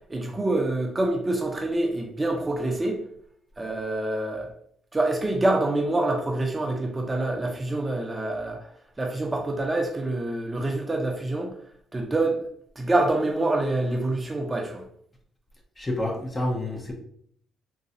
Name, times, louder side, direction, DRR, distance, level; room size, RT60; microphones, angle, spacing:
voice 1, 0.1-3.0 3.6-4.5 4.9-8.7 9.0-11.5 11.9-12.4 12.8-14.8, right 2 dB, 20° right, 2 dB, 0.6 m, -26 dB
voice 2, 15.8-16.9, left 1 dB, 25° left, 2 dB, 0.7 m, -28 dB
3.9 x 2.2 x 2.6 m, 0.64 s
cardioid pair, 90°, 0 cm